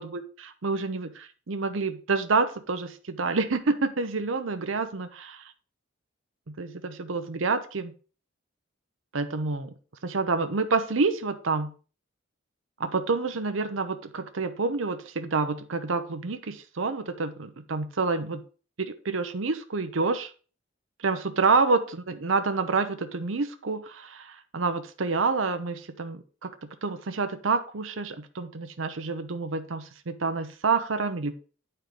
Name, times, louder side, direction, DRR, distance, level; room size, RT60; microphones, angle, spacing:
voice 1, 0.0-5.3 6.6-7.9 9.1-9.7 10.0-11.7 12.8-18.4 18.8-20.3 21.0-26.5 26.8-31.4, right 4 dB, 85° right, 8 dB, 0.8 m, -28 dB
9.4 x 4.4 x 5.1 m, 0.37 s
head